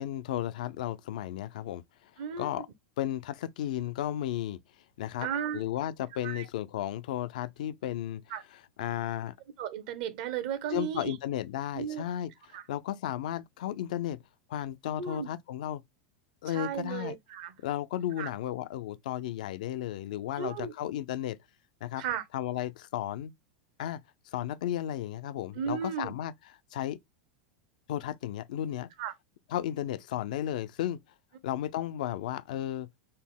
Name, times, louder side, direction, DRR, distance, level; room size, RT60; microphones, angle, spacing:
voice 1, 0.0-2.1 2.4-2.7 3.0-4.6 5.0-5.3 5.5-8.2 8.8-9.3 10.7-14.2 14.5-15.8 16.4-17.2 17.6-21.4 21.8-22.0 22.3-23.3 23.8-24.0 24.3-26.3 26.7-27.0 27.9-28.9 29.5-31.0 31.4-32.9, left 12 dB, 75° left, 0.4 m, -34 dB
voice 2, 2.2-2.6 5.2-5.6 6.2-6.5 8.3-8.4 9.6-11.2 11.7-12.0 12.5-12.6 15.0-15.3 16.5-17.5 18.2-18.3 20.4-20.7 22.0-22.2 25.5-26.1 29.0-29.1, right 8 dB, 60° right, 0.8 m, -34 dB
4.1 x 2.1 x 3.5 m
hypercardioid pair, 110°, 4 cm